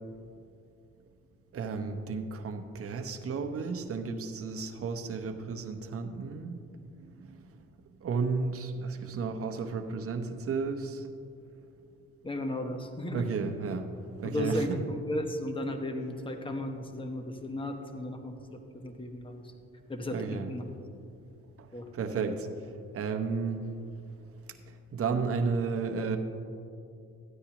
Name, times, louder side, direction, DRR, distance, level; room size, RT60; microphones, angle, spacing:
voice 1, 1.5-6.6 7.0-7.4 8.0-11.1 13.1-14.8 20.1-20.5 21.9-22.5 22.9-23.6 24.9-26.2, right 5 dB, 50° right, 6 dB, 0.9 m, -33 dB
voice 2, 12.2-13.3 14.2-19.4 19.9-20.6 21.7-21.9, left 1 dB, 15° left, 5 dB, 1.1 m, -35 dB
13.5 x 9.4 x 3.0 m, 2.5 s
cardioid pair, 90°, 30 cm